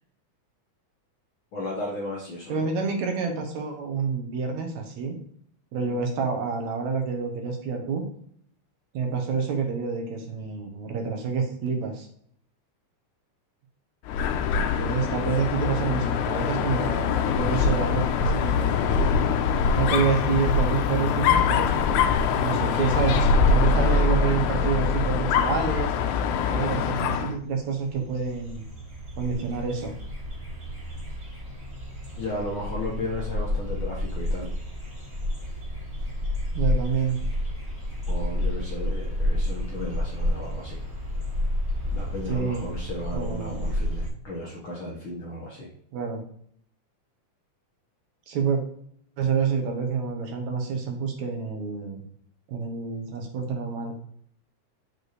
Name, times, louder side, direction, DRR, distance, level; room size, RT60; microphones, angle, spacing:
voice 1, 1.5-2.7 5.8-6.0 32.2-34.5 38.1-40.8 41.9-45.7, left 1 dB, 55° left, -3 dB, 1.5 m, -34 dB
voice 2, 2.5-5.2 5.7-8.0 8.9-12.1 14.8-18.9 19.7-22.0 22.3-26.0 26.5-28.6 29.2-29.9 36.5-37.2 42.3-42.6 43.1-43.7 45.9-46.2 48.3-48.6 49.2-52.0 52.5-54.0, right 5 dB, 70° right, 3 dB, 2.2 m, -28 dB
Dog, 14.1-27.4, left 5 dB, 80° left, 2.0 m, -23 dB
sound 1, 27.5-44.1, left 1 dB, 20° right, 2.5 m, -30 dB
6.1 x 5.3 x 3.1 m, 0.64 s
omnidirectional pair, 3.6 m